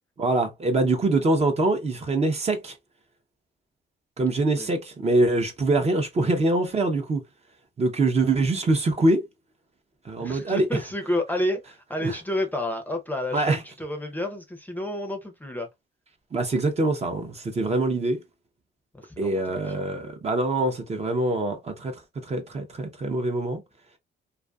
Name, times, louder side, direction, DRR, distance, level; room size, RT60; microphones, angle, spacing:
voice 1, 0.2-2.8 4.2-7.2 7.8-9.2 10.0-10.7 12.0-12.2 13.3-13.6 16.3-18.2 19.2-23.6, right 2 dB, 30° right, 0.7 m, -24 dB
voice 2, 10.2-15.7 18.9-19.9, left 1 dB, 10° left, 0.6 m, -30 dB
2.5 x 2.5 x 2.3 m
cardioid pair, 90°, 20 cm